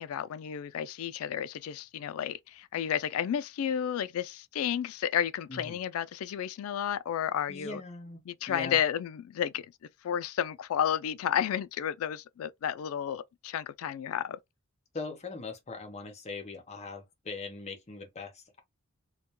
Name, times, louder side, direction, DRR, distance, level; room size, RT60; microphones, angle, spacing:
voice 1, 0.0-7.8 8.3-9.7 10.0-14.4, left 9 dB, 90° left, 0.3 m, -32 dB
voice 2, 7.5-8.8 14.9-18.6, left 3 dB, 30° left, 0.7 m, -41 dB
2.3 x 2.2 x 2.9 m
head